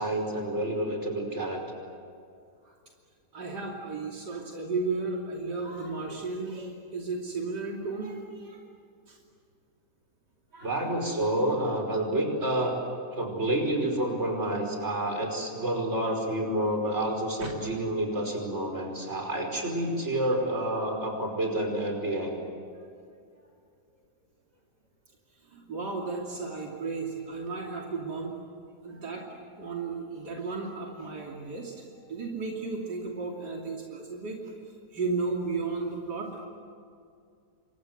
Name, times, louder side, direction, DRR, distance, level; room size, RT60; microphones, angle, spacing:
voice 1, 0.0-1.6 10.6-12.8 13.1-22.4, right 1 dB, 40° right, 3 dB, 5.6 m, -29 dB
voice 2, 3.3-8.7 9.1-9.2 10.5-10.7 17.4-17.5 25.5-28.4 28.8-29.3 29.6-34.4 34.9-36.3, right 3 dB, 80° right, -1 dB, 3.5 m, -34 dB
28.5 x 25.5 x 7.9 m, 2.3 s
omnidirectional pair, 1.8 m